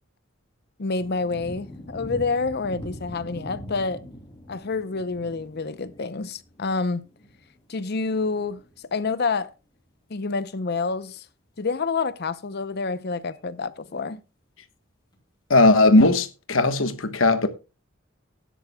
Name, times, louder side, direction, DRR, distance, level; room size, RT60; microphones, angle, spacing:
voice 1, 0.8-4.0 4.5-7.0 7.7-8.6 8.9-9.5 10.1-11.2 11.6-14.2, left 4 dB, 55° left, 0.7 m, -28 dB
sound 1, 1.0-9.1 9.4-9.5 10.7-10.8 10.9-11.0 13.3-13.4 15.1-15.2, equal, 20° left, 2.7 m, -43 dB
voice 2, 15.5-17.5, left 2 dB, 80° left, 1.2 m, -18 dB
16.5 x 10.0 x 2.3 m
head